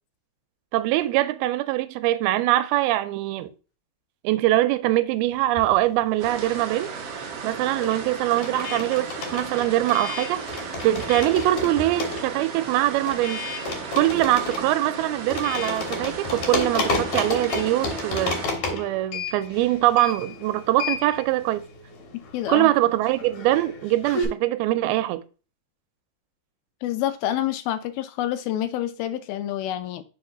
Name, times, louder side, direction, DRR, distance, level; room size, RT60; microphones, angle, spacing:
voice 1, 0.7-3.5 4.2-6.9 7.4-10.4 10.8-13.5 13.9-18.4 18.7-21.6 22.5-25.2, right 15 dB, 85° right, 2.5 m, -23 dB
sound 1, 5.4-6.7 6.9-24.3, left 3 dB, 60° left, 2.3 m, -32 dB
sound 2, 6.2-18.5, right 5 dB, 65° right, 1.5 m, -35 dB
voice 2, 22.3-22.7 26.8-30.0, left 12 dB, 80° left, 2.4 m, -27 dB
5.8 x 4.8 x 3.8 m
omnidirectional pair, 4.3 m